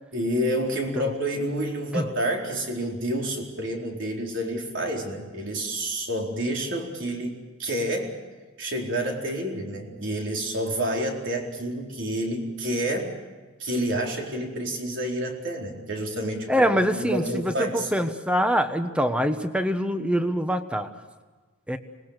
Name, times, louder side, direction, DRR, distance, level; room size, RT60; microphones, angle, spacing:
voice 1, 0.1-8.1 8.6-13.1 13.6-16.5 16.9-17.9, right 1 dB, 65° right, 0 dB, 4.3 m, -29 dB
voice 2, 16.5-20.9 21.7-21.8, equal, 5° right, 8 dB, 1.2 m, -24 dB
25.5 x 19.5 x 6.7 m, 1.3 s
head